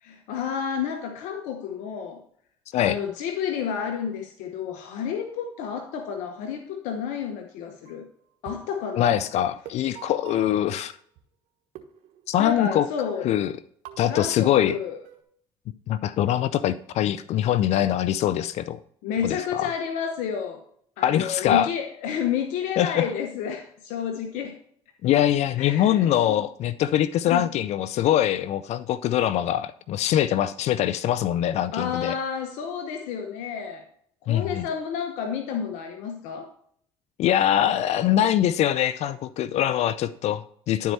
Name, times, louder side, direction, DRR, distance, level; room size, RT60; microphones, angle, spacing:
voice 1, 0.0-2.2 2.8-8.1 8.4-9.2 12.4-13.3 14.0-15.0 19.0-20.6 21.0-24.6 25.6-26.4 27.3-27.5 31.7-33.9 34.2-36.5, left 7 dB, 75° left, 5 dB, 0.9 m, -30 dB
sound 1, 7.8-8.1 8.4-11.2 11.7-12.9 13.8-15.2, right 13 dB, 70° right, 1.2 m, -46 dB
voice 2, 9.0-10.9 12.3-12.9 13.2-13.5 14.0-14.8 15.9-18.8 19.2-19.7 21.0-21.7 22.8-23.1 25.0-32.2 34.3-34.6 37.2-40.9, left 11 dB, 60° left, 16 dB, 0.4 m, -23 dB
11.0 x 4.6 x 4.1 m, 0.64 s
supercardioid pair, 75°, 12 cm